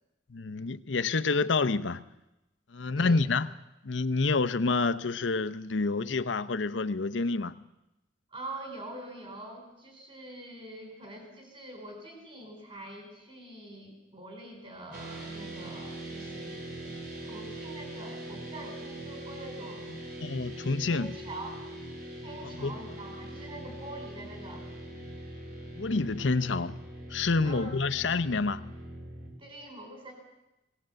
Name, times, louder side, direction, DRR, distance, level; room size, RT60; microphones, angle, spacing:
voice 1, 0.3-2.0 2.7-3.5 3.8-7.5 20.2-21.1 22.6-22.7 25.8-26.8 27.1-28.6, left 3 dB, 75° left, 0.8 m, -28 dB
voice 2, 2.9-3.3 8.3-16.8 17.2-19.9 20.9-21.6 22.2-24.7 27.4-27.8 29.4-30.1, right 1 dB, 30° right, 4.1 m, -44 dB
sound 1, 14.9-29.3, right 1 dB, 55° right, 4.4 m, -42 dB
20.5 x 17.5 x 7.7 m
head